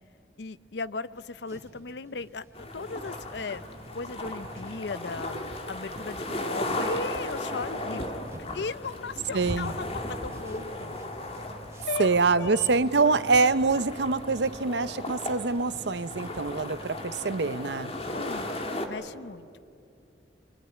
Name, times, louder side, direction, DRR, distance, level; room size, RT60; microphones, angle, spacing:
voice 1, 0.4-3.7 3.9-8.1 8.4-11.1 11.8-12.9 17.9-19.6, left 4 dB, 70° left, 16 dB, 0.7 m, -37 dB
sound 1, 1.2-18.8, equal, 15° right, 3.3 m, -54 dB
sound 2, 2.5-18.9, left 1 dB, 35° left, 2.2 m, -36 dB
voice 2, 9.3-9.7 12.0-17.9, right 4 dB, 70° right, 15 dB, 0.7 m, -25 dB
25.5 x 23.5 x 9.8 m, 2.5 s
head